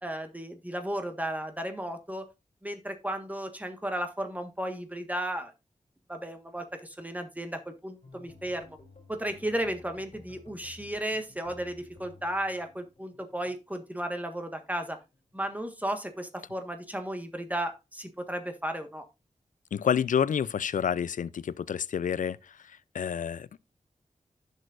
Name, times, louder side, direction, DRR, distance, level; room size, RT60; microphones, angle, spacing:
voice 1, 0.0-2.3 2.6-5.5 6.1-8.8 9.1-15.0 15.3-19.0, right 1 dB, 10° right, 1.5 m, -34 dB
sound 1, 8.0-14.2 14.5-15.5 15.8-16.1 16.5-16.7, left 2 dB, 55° left, 3.2 m, -55 dB
voice 2, 19.7-23.6, left 8 dB, 75° left, 0.4 m, -29 dB
10.5 x 6.5 x 2.5 m
cardioid pair, 50°, 13 cm